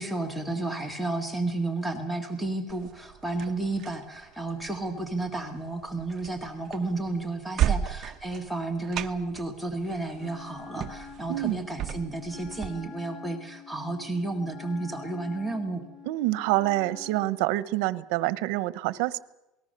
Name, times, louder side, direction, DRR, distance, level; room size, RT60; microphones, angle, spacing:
voice 1, 0.0-15.8, right 2 dB, ahead, 5 dB, 1.9 m, -32 dB
sound 1, 2.7-12.7, right 10 dB, 35° right, 1.0 m, -35 dB
Wind instrument woodwind instrument, 10.1-17.4, left 7 dB, 30° left, 2.3 m, -46 dB
voice 2, 11.3-11.6 16.0-19.2, right 17 dB, 75° right, 16 dB, 1.0 m, -27 dB
28.0 x 19.5 x 6.7 m, 0.93 s
cardioid pair, 165°, 0 cm